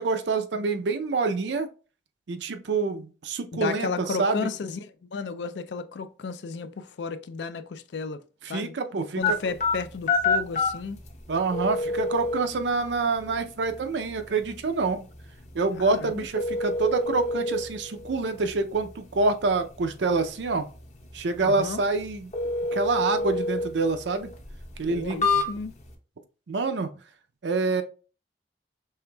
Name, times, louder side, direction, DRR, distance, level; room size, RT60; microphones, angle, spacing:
voice 1, 0.0-1.7 2.3-4.5 8.5-9.4 11.3-15.0 15.5-20.7 21.1-22.3 22.7-24.3 24.8-25.4 26.5-26.9 27.4-27.8, right 3 dB, 80° right, 0.5 m, -26 dB
voice 2, 3.5-8.2 8.5-8.7 9.2-11.0 15.7-16.3 21.4-21.8 24.9-25.7, left 4 dB, 75° left, 0.4 m, -33 dB
sound 1, 9.2-25.9, left 3 dB, 40° left, 0.8 m, -30 dB
5.5 x 3.3 x 2.3 m
head